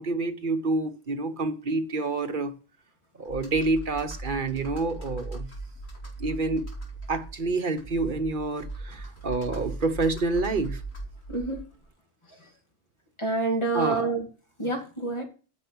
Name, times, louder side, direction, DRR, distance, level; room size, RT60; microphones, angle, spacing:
voice 1, 0.0-2.5 3.2-5.5 6.2-6.7 7.1-10.8 13.7-14.0, right 3 dB, 50° right, 1.3 m, -28 dB
Computer keyboard, 3.2-11.9, right 2 dB, 75° left, 3.6 m, -39 dB
voice 2, 11.3-11.6 13.2-14.3 14.6-15.2, right 3 dB, 25° left, 2.6 m, -27 dB
9.8 x 6.4 x 8.8 m
omnidirectional pair, 1.1 m